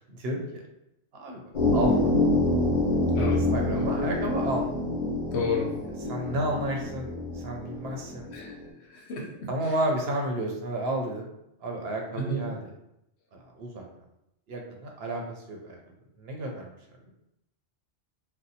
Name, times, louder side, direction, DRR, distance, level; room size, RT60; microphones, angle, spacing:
voice 1, 0.1-0.6 1.1-1.4 1.7-2.2 3.3-4.7 6.0-7.1 7.4-8.3 9.5-11.3 11.6-12.7 13.3-13.8 14.5-15.8 16.2-16.7, right 1 dB, 65° right, 1 dB, 0.8 m, -31 dB
sound 1, 1.5-8.5, left 2 dB, 40° left, 1.1 m, -27 dB
voice 2, 5.3-5.7 8.3-8.6 8.9-9.5 12.2-12.4, left 3 dB, 70° left, -1 dB, 1.0 m, -31 dB
2.7 x 2.2 x 3.9 m, 0.82 s
omnidirectional pair, 1.2 m